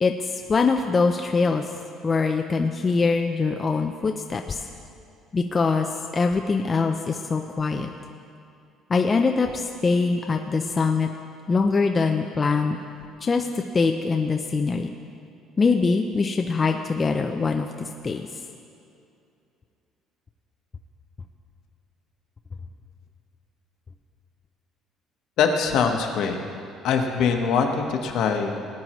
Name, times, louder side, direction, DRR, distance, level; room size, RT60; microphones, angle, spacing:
voice 1, 0.0-1.6 2.0-4.6 5.3-7.9 8.9-11.1 11.5-12.8 13.2-13.5 13.7-14.9 15.6-18.3, left 4 dB, 20° left, 4 dB, 0.4 m, -23 dB
voice 2, 25.4-26.4 26.8-28.5, left 6 dB, 60° left, 3 dB, 1.1 m, -22 dB
18.5 x 9.5 x 3.0 m, 2.6 s
cardioid pair, 165°, 0 cm